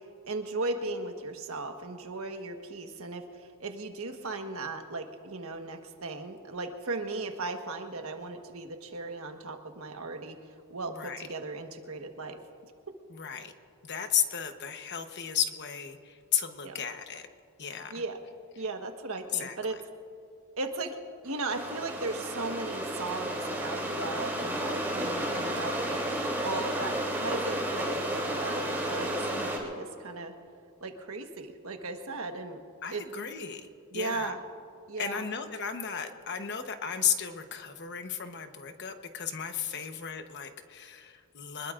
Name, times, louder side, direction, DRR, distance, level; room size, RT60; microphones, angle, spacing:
voice 1, 0.3-10.4 10.7-12.4 16.6-16.8 17.9-18.2 18.6-19.8 20.6-21.0 21.2-26.0 26.4-30.3 30.8-32.6 32.9-33.0 33.9-34.4 34.9-35.2, right 3 dB, 75° right, 5 dB, 1.4 m, -37 dB
voice 2, 13.1-13.5 13.8-17.3 17.6-17.9 19.3-19.6 32.8-33.7 33.9-34.3 35.0-41.7, left 8 dB, 50° left, 6 dB, 1.1 m, -34 dB
sound 1, 21.3-29.6, right 1 dB, 10° right, 3.3 m, -32 dB
24.5 x 21.0 x 2.6 m, 2.4 s
head